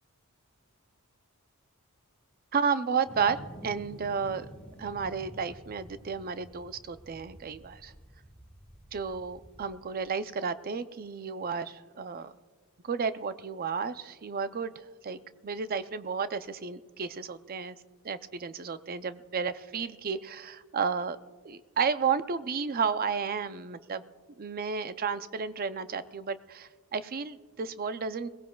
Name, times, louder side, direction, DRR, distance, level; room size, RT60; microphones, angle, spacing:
voice 1, 2.5-4.5 4.8-7.9 8.9-12.3 12.8-17.8 18.0-21.2 21.4-24.0 24.4-28.3, right 6 dB, 40° right, 12 dB, 0.5 m, -32 dB
sound 1, 3.1-9.6, equal, 5° left, 1.3 m, -49 dB
21.5 x 17.5 x 2.3 m, 1.4 s
head